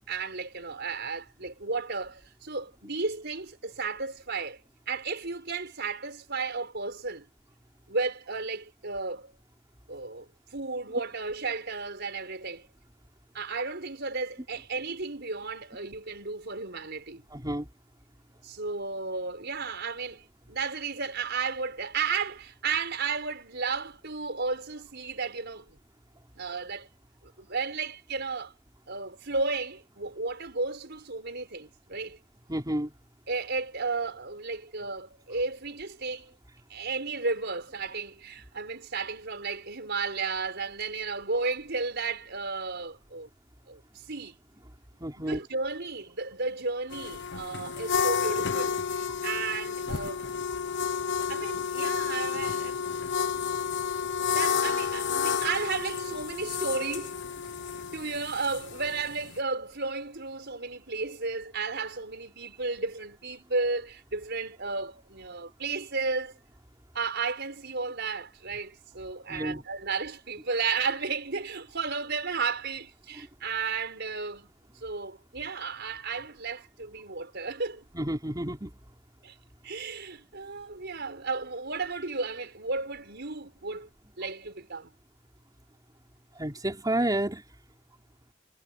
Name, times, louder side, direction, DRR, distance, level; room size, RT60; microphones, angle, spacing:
voice 1, 0.1-4.6 4.9-7.3 7.9-9.3 9.9-12.7 13.3-17.2 18.4-25.8 26.4-26.9 27.4-28.5 28.9-32.2 33.3-36.3 36.7-43.3 43.7-44.4 45.2-50.2 51.3-52.8 53.5-53.6 54.3-57.2 57.9-66.3 66.9-74.5 74.8-77.9 79.2-79.4 79.6-83.9 84.2-84.9, right 4 dB, 55° right, 5.4 m, -33 dB
voice 2, 17.3-17.7 32.5-32.9 45.0-45.4 49.1-49.2 69.3-69.6 77.9-78.8 86.3-87.4, right 1 dB, 20° right, 4.9 m, -30 dB
sound 1, 46.9-59.4, left 7 dB, 60° left, 1.1 m, -31 dB
head